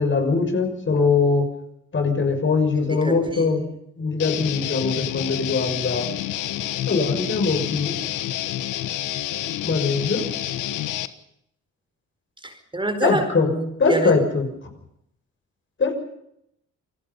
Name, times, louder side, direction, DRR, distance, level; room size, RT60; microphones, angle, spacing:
voice 1, 0.0-1.5 1.9-3.6 4.0-6.1 6.9-7.9 9.6-10.2 13.0-13.5 13.8-14.5 15.8-15.9, left 4 dB, 40° left, 5 dB, 6.6 m, -21 dB
voice 2, 2.7-3.7 12.4-14.2, right 1 dB, 15° right, 6 dB, 4.7 m, -27 dB
Guitar, 4.2-11.1, left 12 dB, 90° left, 1.4 m, -28 dB
28.5 x 19.5 x 5.6 m, 0.75 s
cardioid pair, 90°, 30 cm